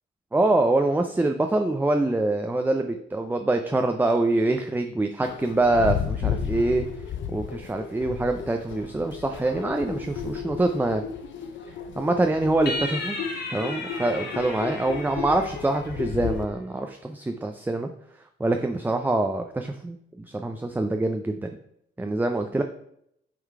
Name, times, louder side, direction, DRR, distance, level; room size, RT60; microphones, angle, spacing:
voice 1, 0.3-6.8 7.3-11.0 12.0-13.2 13.5-17.9 18.4-20.0 20.3-21.6 22.0-22.6, right 2 dB, 10° right, 5 dB, 0.5 m, -25 dB
sound 1, 5.2-16.5, left 7 dB, 70° left, 0.8 m, -33 dB
sound 2, 12.7-16.2, left 2 dB, 55° left, 1.9 m, -35 dB
8.1 x 3.8 x 4.7 m, 0.74 s
cardioid pair, 90°, 20 cm